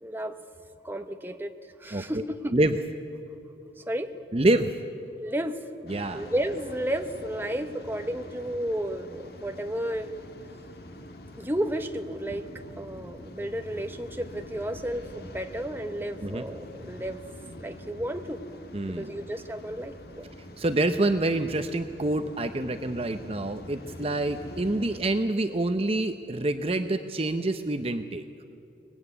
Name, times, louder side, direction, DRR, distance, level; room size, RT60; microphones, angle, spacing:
voice 1, 0.0-0.4 0.8-1.5 1.8-2.5 3.8-4.1 5.2-5.6 6.1-10.1 11.4-12.5 12.8-17.2 17.6-18.4 18.9-20.3, right 1 dB, 10° right, 6 dB, 1.0 m, -32 dB
voice 2, 1.9-2.2 2.5-2.8 4.3-4.7 5.9-6.3 16.2-16.4 18.7-19.1 20.6-28.3, right 2 dB, 30° right, 8 dB, 0.7 m, -27 dB
Waves surf, 5.9-25.0, left 1 dB, 55° left, 1.8 m, -45 dB
24.0 x 19.5 x 9.8 m, 2.7 s
head